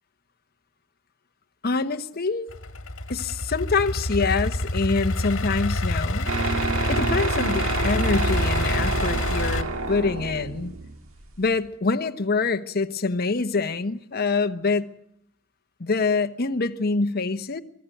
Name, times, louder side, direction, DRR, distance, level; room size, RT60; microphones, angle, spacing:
voice 1, 1.6-2.5 3.1-6.3 6.9-10.7 11.4-14.9 15.8-17.6, left 4 dB, 50° left, 1.0 m, -25 dB
Idling / Accelerating revving vroom, 2.5-9.6, left 1 dB, 70° left, 2.0 m, -27 dB
sound 1, 6.3-11.7, right 3 dB, 80° right, 1.7 m, -28 dB
24.0 x 14.5 x 9.3 m
head